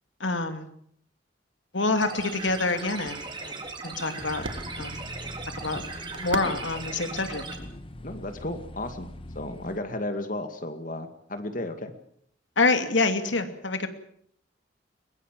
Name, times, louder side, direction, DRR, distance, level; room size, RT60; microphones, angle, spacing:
voice 1, 0.2-0.7 1.7-3.6 3.8-4.4 4.7-5.0 5.5-5.8 6.2-7.4 12.6-13.9, left 3 dB, 85° left, 8 dB, 2.8 m, -26 dB
sound 1, 2.0-7.6, right 3 dB, 25° right, 3.8 m, -38 dB
sound 2, 2.3-8.6, right 2 dB, 85° right, 2.2 m, -43 dB
sound 3, 4.2-9.8, left 1 dB, 30° left, 1.3 m, -42 dB
voice 2, 8.0-9.1 9.3-11.9, left 1 dB, 45° left, 8 dB, 2.3 m, -34 dB
22.0 x 21.0 x 7.7 m, 0.66 s
head